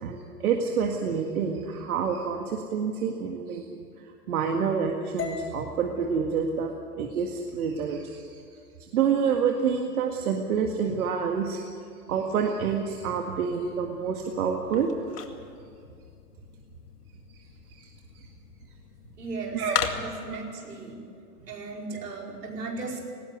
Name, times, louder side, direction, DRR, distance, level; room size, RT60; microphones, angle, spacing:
voice 1, 0.0-3.7 4.3-8.4 8.8-11.7 12.1-14.9 17.7-17.9 18.2-18.3 19.5-19.8 20.3-20.4 21.9-22.0, right 6 dB, 65° right, 2 dB, 2.1 m, -28 dB
sound 1, 5.2-9.3, left 6 dB, 25° left, 3.8 m, -42 dB
sound 2, 13.6-20.4, left 7 dB, 80° left, 2.2 m, -38 dB
voice 2, 19.2-21.0 21.5-23.0, right 3 dB, 85° right, -1 dB, 5.1 m, -36 dB
19.5 x 17.0 x 9.5 m, 2.4 s
hypercardioid pair, 115°, 46 cm